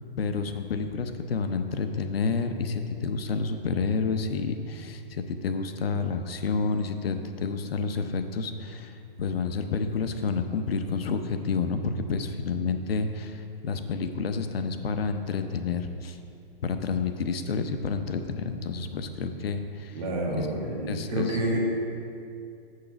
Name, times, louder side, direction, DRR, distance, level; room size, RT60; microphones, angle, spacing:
voice 1, 0.2-16.2 16.6-20.0 20.4-20.5 20.9-21.4, left 4 dB, 85° left, 7 dB, 0.8 m, -29 dB
voice 2, 19.9-21.6, right 1 dB, 40° right, -3 dB, 1.7 m, -29 dB
7.0 x 6.6 x 5.1 m, 2.5 s
hypercardioid pair, 170°, 29 cm